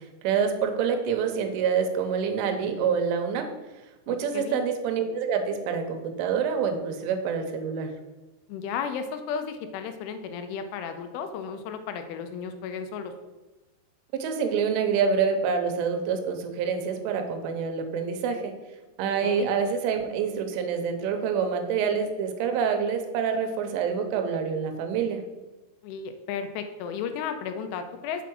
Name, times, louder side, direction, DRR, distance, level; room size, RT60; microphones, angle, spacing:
voice 1, 0.2-3.5 4.1-7.9 14.2-18.5 19.0-25.2, right 6 dB, 80° right, 5 dB, 3.3 m, -27 dB
voice 2, 4.1-4.6 8.5-13.1 19.2-19.5 25.8-28.2, left 6 dB, 85° left, 8 dB, 3.1 m, -34 dB
7.1 x 4.7 x 6.1 m, 1.1 s
omnidirectional pair, 5.6 m